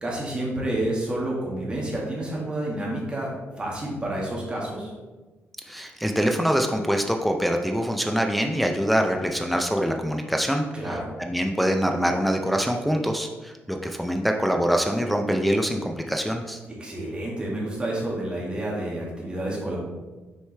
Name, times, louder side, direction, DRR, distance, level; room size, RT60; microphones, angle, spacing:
voice 1, 0.0-4.9 10.7-11.1 16.7-19.8, right 1 dB, 20° right, -4 dB, 1.6 m, -29 dB
voice 2, 5.7-10.7 11.2-16.6, equal, ahead, 3 dB, 0.4 m, -24 dB
6.5 x 4.7 x 3.2 m, 1.2 s
cardioid pair, 145°, 5 cm